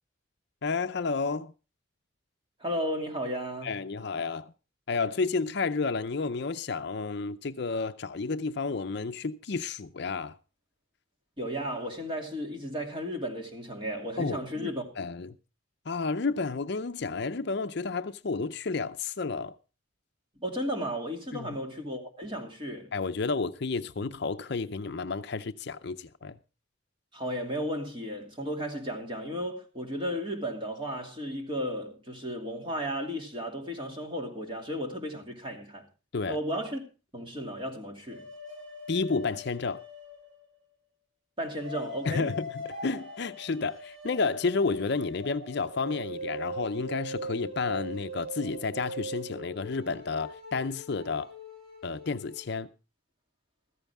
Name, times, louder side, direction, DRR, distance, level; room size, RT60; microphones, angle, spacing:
voice 1, 0.6-1.5 3.6-4.5 4.9-10.4 14.2-14.7 15.0-15.4 15.9-19.5 21.3-21.6 22.9-26.3 36.1-36.4 38.9-39.8 42.0-51.3 51.8-52.7, left 4 dB, 55° left, 0.6 m, -31 dB
voice 2, 2.6-3.8 11.4-14.9 20.4-22.9 27.1-35.8 36.3-36.8 37.1-38.3 41.4-42.3, equal, 25° right, 2.6 m, -34 dB
sound 1, 38.1-40.6 41.6-52.4, equal, 85° right, 7.3 m, -41 dB
14.5 x 14.0 x 3.5 m
head